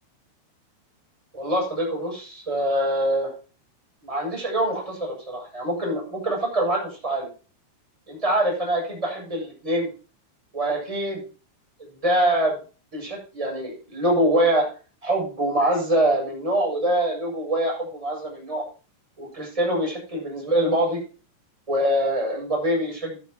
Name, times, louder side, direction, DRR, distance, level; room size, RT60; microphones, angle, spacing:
voice 1, 1.3-3.3 4.0-7.3 8.1-9.9 10.5-11.2 12.0-12.5 12.9-14.7 15.0-18.6 19.2-21.0 21.7-23.2, right 1 dB, 5° right, -2 dB, 7.1 m, -24 dB
13.0 x 12.5 x 2.9 m, 0.35 s
omnidirectional pair, 5.7 m